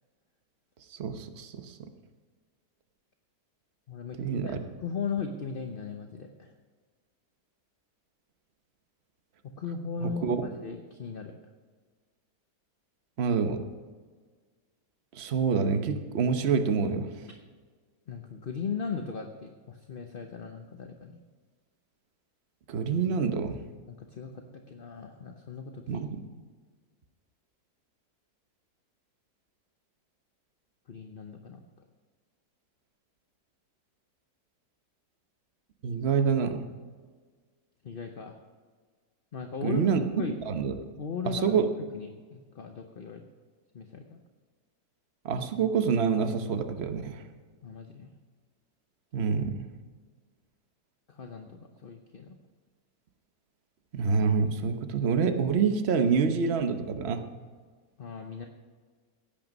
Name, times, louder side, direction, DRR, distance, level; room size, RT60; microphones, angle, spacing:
voice 1, 1.0-1.6 4.2-4.6 10.0-10.4 13.2-13.6 15.1-17.1 22.7-23.6 25.9-26.2 35.8-36.7 39.6-40.0 40.5-40.7 41.2-41.7 45.2-47.2 49.1-49.7 53.9-57.2, right 6 dB, 45° right, 8 dB, 1.1 m, -27 dB
voice 2, 3.9-6.5 9.4-11.3 18.1-21.2 23.9-26.1 30.9-31.6 37.8-38.4 39.3-40.4 41.0-43.2 43.7-44.2 47.6-48.1 51.1-52.4 58.0-58.5, left 5 dB, 45° left, 4 dB, 0.8 m, -38 dB
16.5 x 8.9 x 5.3 m, 1.5 s
omnidirectional pair, 1.8 m